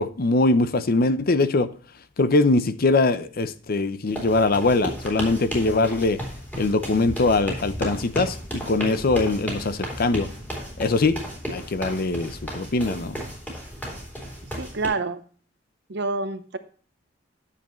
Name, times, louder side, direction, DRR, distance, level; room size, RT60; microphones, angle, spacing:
voice 1, 0.0-1.7 2.2-6.2 6.6-10.3 10.8-11.2 11.5-13.2, left 3 dB, 50° left, 0.6 m, -22 dB
sound 1, 4.1-14.9, equal, 10° left, 3.1 m, -34 dB
voice 2, 14.6-15.2 15.9-16.6, right 3 dB, 60° right, 0.9 m, -27 dB
9.8 x 7.2 x 3.1 m
head